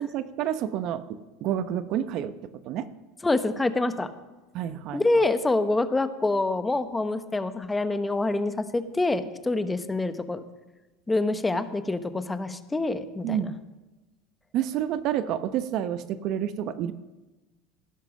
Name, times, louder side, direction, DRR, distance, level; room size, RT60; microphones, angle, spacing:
voice 1, 0.0-2.9 4.5-5.0 13.2-13.5 14.5-16.9, right 10 dB, 50° right, 12 dB, 0.8 m, -29 dB
voice 2, 3.2-4.1 4.9-10.4 11.1-13.5, left 2 dB, 10° left, 10 dB, 1.0 m, -26 dB
16.5 x 11.0 x 6.4 m, 1.1 s
supercardioid pair, 120°, 0 cm